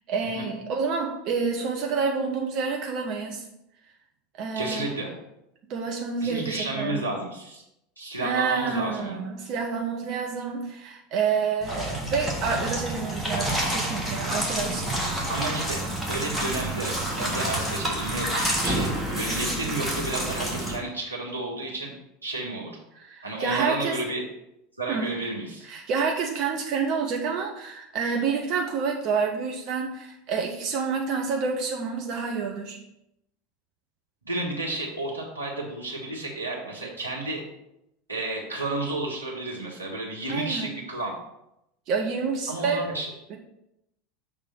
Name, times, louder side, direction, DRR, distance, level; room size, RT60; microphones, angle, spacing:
voice 1, 0.1-3.4 4.4-4.9 5.7-7.1 8.2-14.9 23.0-24.0 24.9-25.2 25.6-32.8 40.3-40.8 41.9-42.9 43.3-43.4, right 5 dB, 45° right, 1 dB, 0.7 m, -28 dB
voice 2, 4.5-5.1 6.2-7.6 8.0-9.2 15.3-21.9 22.2-22.8 23.2-24.2 24.8-25.7 34.2-37.4 38.1-41.1 42.5-43.1, right 2 dB, 85° right, -3 dB, 1.4 m, -32 dB
sound 1, 11.6-20.8, right 1 dB, ahead, 1.7 m, -28 dB
6.6 x 3.5 x 5.8 m, 0.83 s
figure-of-eight pair, 80°, 0 cm